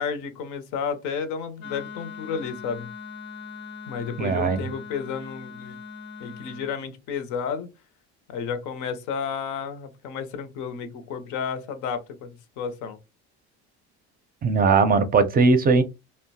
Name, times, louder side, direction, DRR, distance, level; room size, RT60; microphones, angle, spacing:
voice 1, 0.0-2.9 3.9-5.8 6.2-7.7 8.3-13.0, left 6 dB, 65° left, 0.7 m, -32 dB
Wind instrument woodwind instrument, 1.6-6.7, left 5 dB, 85° left, 1.0 m, -40 dB
voice 2, 4.2-4.6 14.4-15.8, right 4 dB, 30° right, 0.5 m, -19 dB
2.7 x 2.1 x 2.7 m
supercardioid pair, 95°, 32 cm